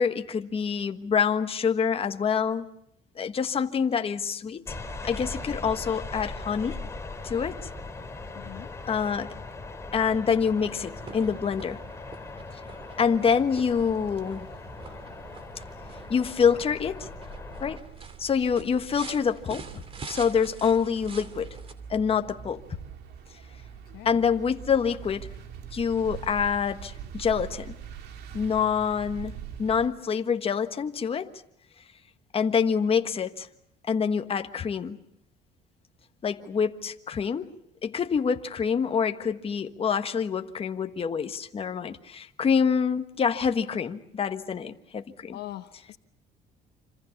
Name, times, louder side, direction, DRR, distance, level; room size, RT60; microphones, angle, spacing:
voice 1, 0.0-2.7 3.2-4.7 5.0-6.8 7.2-7.6 8.8-9.3 9.9-11.8 13.0-14.5 16.1-17.1 17.6-17.8 18.2-19.7 20.1-21.5 21.9-22.6 24.0-25.3 25.7-27.7 28.3-31.3 32.3-33.5 33.9-35.0 36.2-37.5 37.8-45.4, left 6 dB, 35° left, 1.4 m, -26 dB
sound 1, 4.7-17.8, left 3 dB, 15° left, 3.3 m, -40 dB
voice 2, 8.3-8.7 23.9-24.3 45.3-46.0, left 14 dB, 75° left, 1.2 m, -41 dB
sound 2, 10.5-21.7, right 4 dB, 35° right, 2.6 m, -46 dB
sound 3, 13.1-29.9, right 8 dB, 75° right, 2.8 m, -44 dB
27.0 x 26.5 x 7.2 m
cardioid pair, 110°, 17 cm